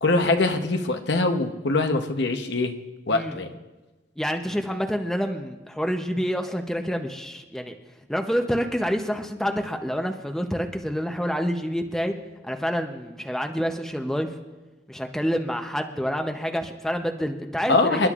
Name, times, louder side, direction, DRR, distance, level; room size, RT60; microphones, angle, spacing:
voice 1, 0.0-2.7 3.1-3.5 17.7-18.1, left 2 dB, 65° left, 5 dB, 0.9 m, -23 dB
voice 2, 4.2-7.8 8.1-12.1 12.4-14.3 14.9-18.1, equal, ahead, 4 dB, 0.7 m, -27 dB
28.0 x 11.5 x 2.5 m, 1.2 s
head